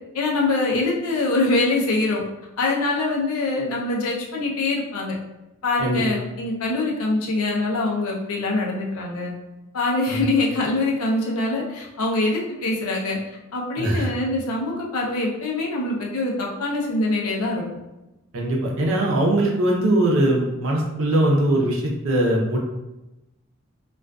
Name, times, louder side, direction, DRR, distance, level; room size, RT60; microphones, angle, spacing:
voice 1, 0.1-2.2 2.6-5.1 5.6-9.3 9.7-13.2 13.5-17.6, left 2 dB, 85° left, -2 dB, 0.6 m, -24 dB
voice 2, 13.8-14.1 18.3-22.6, right 1 dB, 70° right, -1 dB, 0.6 m, -21 dB
2.4 x 2.3 x 2.2 m, 0.97 s
head